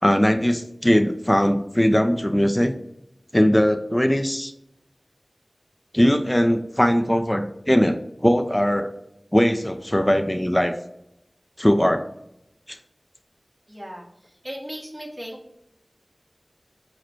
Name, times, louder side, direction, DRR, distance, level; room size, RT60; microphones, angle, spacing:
voice 1, 0.0-2.7 3.3-4.5 5.9-8.9 9.3-10.7 11.6-12.1 12.7-12.8, equal, 15° left, 7 dB, 0.4 m, -20 dB
voice 2, 13.7-15.4, equal, 15° right, -1 dB, 1.3 m, -37 dB
4.9 x 2.1 x 4.4 m, 0.80 s
wide cardioid pair, 40°, 0 cm